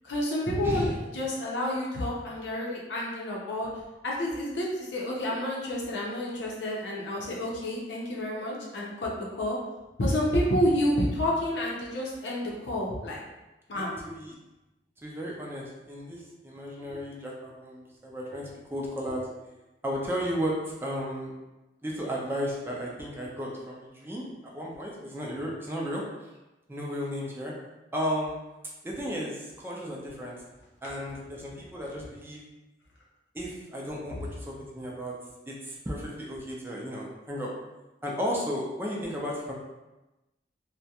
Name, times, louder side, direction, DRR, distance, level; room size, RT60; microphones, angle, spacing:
voice 1, 0.0-3.7 4.0-9.6 10.0-13.2 13.7-13.9 30.8-30.9, left 1 dB, 85° left, -3 dB, 0.6 m, -29 dB
voice 2, 0.6-0.9 13.7-14.3 15.0-19.3 19.8-21.3 21.8-26.0 26.7-27.5 27.9-28.3 28.8-30.4 30.8-32.4 33.3-35.1 35.5-37.5 38.0-39.5, equal, 15° right, -3 dB, 0.4 m, -34 dB
2.3 x 2.1 x 2.7 m, 1.0 s
head